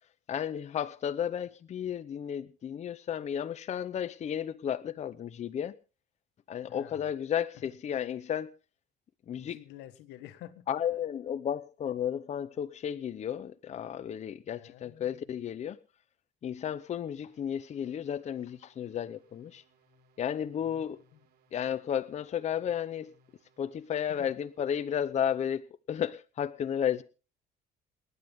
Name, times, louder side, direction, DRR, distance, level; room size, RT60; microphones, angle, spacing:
voice 1, 0.3-5.7 6.5-8.5 9.3-9.6 10.7-15.8 16.4-19.6 20.2-21.0 21.5-23.1 23.6-27.0, left 9 dB, 40° left, 0.7 m, -33 dB
voice 2, 6.7-7.0 7.5-7.6 9.4-10.7 14.6-15.3 20.6-21.3 24.1-24.3, left 13 dB, 85° left, 1.5 m, -50 dB
sound 1, 17.3-24.8, right 1 dB, 80° right, 7.0 m, -67 dB
28.5 x 9.6 x 3.6 m
cardioid pair, 110°, 17 cm